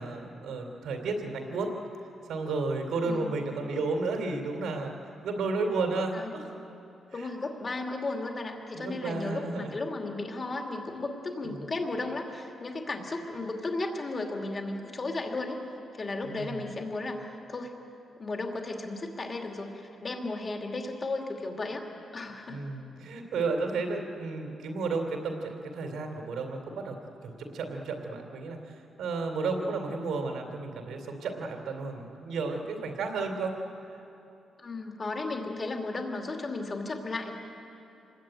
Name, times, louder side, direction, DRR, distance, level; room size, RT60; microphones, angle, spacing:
voice 1, 0.0-1.7 2.3-4.9 5.2-6.5 7.1-7.3 8.7-9.7 11.4-11.7 16.2-16.8 22.5-27.0 27.2-33.5, right 3 dB, 70° right, 4 dB, 3.2 m, -32 dB
voice 2, 3.1-3.4 6.1-6.3 7.1-15.6 15.9-17.7 18.2-19.7 20.0-21.8 22.1-22.6 34.6-37.3, left 2 dB, 25° left, 2 dB, 2.5 m, -34 dB
27.0 x 21.0 x 9.1 m, 2.8 s
wide cardioid pair, 175°, 0 cm